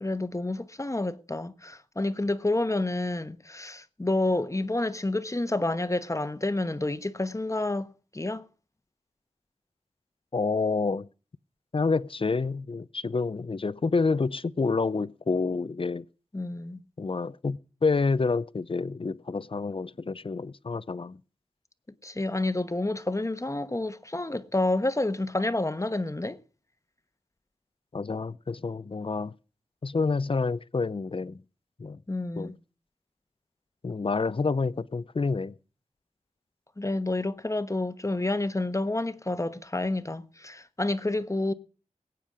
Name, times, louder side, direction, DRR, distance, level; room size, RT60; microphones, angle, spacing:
voice 1, 0.0-7.9 8.1-8.4 16.3-16.8 22.0-26.4 32.1-32.5 36.8-41.5, left 2 dB, 25° left, 1.1 m, -29 dB
voice 2, 10.3-11.1 11.7-16.1 17.0-21.2 27.9-29.3 29.8-31.4 31.8-32.0 32.4-32.5 33.8-35.5, left 4 dB, 40° left, 0.6 m, -28 dB
21.0 x 9.2 x 5.0 m
wide cardioid pair, 70°, 13 cm